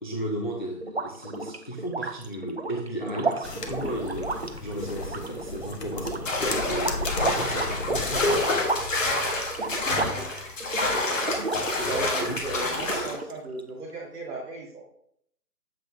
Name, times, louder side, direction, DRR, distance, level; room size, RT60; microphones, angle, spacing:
voice 1, 0.0-8.5 12.2-12.3, right 1 dB, 35° left, -1 dB, 0.5 m, -35 dB
sound 1, 0.8-12.4 12.8-13.6, right 3 dB, 45° right, 0.4 m, -33 dB
sound 2, 3.4-8.5, left 3 dB, 75° left, 1.2 m, -36 dB
sound 3, 6.3-13.2, left 2 dB, 50° left, 1.3 m, -28 dB
voice 2, 11.8-14.8, right 3 dB, 5° right, -11 dB, 1.9 m, -36 dB
7.5 x 5.3 x 2.7 m, 0.68 s
figure-of-eight pair, 145°, 48 cm